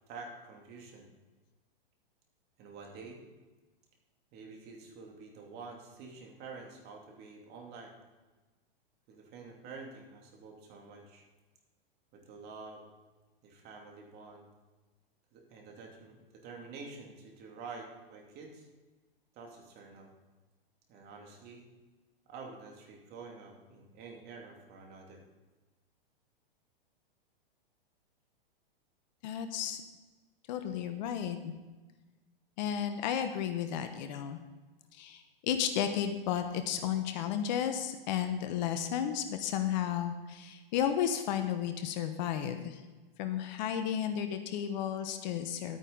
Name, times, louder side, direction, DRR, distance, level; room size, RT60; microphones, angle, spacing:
voice 1, 0.1-1.1 2.6-3.2 4.3-7.9 9.1-11.2 12.1-12.8 13.4-14.5 15.3-16.2 16.4-18.7 19.3-20.1 20.9-21.6 22.3-25.2, right 4 dB, 35° right, 1 dB, 2.6 m, -48 dB
voice 2, 29.2-29.8 30.5-31.5 32.6-34.4 34.9-42.8 43.2-45.8, left 9 dB, 50° left, 8 dB, 1.1 m, -33 dB
12.0 x 9.1 x 3.9 m, 1.2 s
hypercardioid pair, 115°, 29 cm